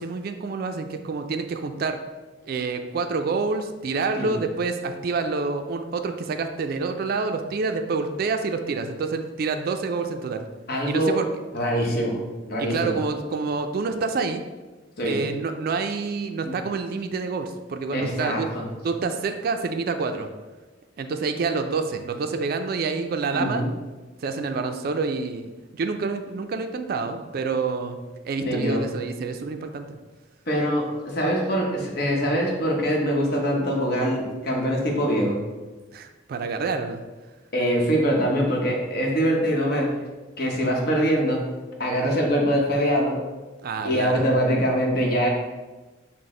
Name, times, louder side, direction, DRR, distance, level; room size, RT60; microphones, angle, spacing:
voice 1, 0.0-2.0 2.4-10.5 10.9-11.3 12.6-14.4 15.0-18.5 18.8-20.3 21.0-23.7 24.2-28.0 28.2-30.0 35.9-37.0 43.6-44.3, right 4 dB, 50° right, 7 dB, 0.3 m, -27 dB
voice 2, 10.7-11.2 11.5-12.9 15.0-15.2 16.4-16.6 17.9-18.6 23.3-23.7 28.5-28.8 30.5-35.4 37.5-40.0 40.4-41.5 41.8-43.2 43.8-45.3, equal, 55° left, -1 dB, 0.8 m, -23 dB
5.9 x 2.0 x 3.7 m, 1.2 s
head